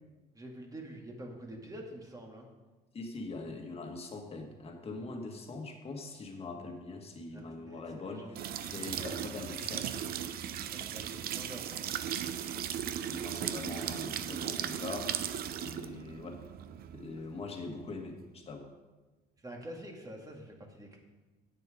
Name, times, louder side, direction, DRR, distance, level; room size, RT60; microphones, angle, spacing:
voice 1, 0.3-2.5 7.3-9.2 10.7-11.9 19.4-21.0, right 1 dB, 20° right, 1 dB, 2.1 m, -47 dB
voice 2, 2.9-9.9 13.1-15.2 15.6-16.4 16.9-18.7, left 3 dB, 35° left, 4 dB, 1.7 m, -42 dB
sound 1, 8.4-18.0, right 9 dB, 65° right, 0.6 m, -37 dB
8.8 x 8.5 x 5.1 m, 1.2 s
cardioid pair, 110°, 17 cm